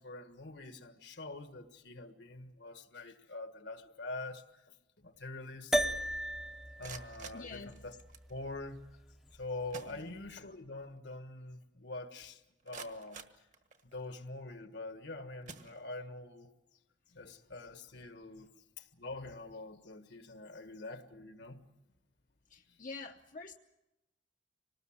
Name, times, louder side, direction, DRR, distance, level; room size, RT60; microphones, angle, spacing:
voice 1, 0.0-4.7 5.0-5.8 6.8-8.0 8.3-8.8 9.3-13.2 13.9-16.5 17.1-18.5 18.8-21.6, left 2 dB, 70° left, 1.5 m, -45 dB
sound 1, 5.7-10.3, equal, 5° right, 0.7 m, -37 dB
sound 2, 6.6-8.3 9.3-9.4 9.7-10.6 11.0-11.1 11.6-11.7 12.3-14.1 14.8-15.0 15.4-16.3, right 5 dB, 45° right, 1.4 m, -51 dB
voice 2, 7.3-7.7 9.9-10.2 18.4-18.5 22.5-23.5, left 4 dB, 45° left, 0.8 m, -47 dB
26.0 x 19.0 x 7.3 m
head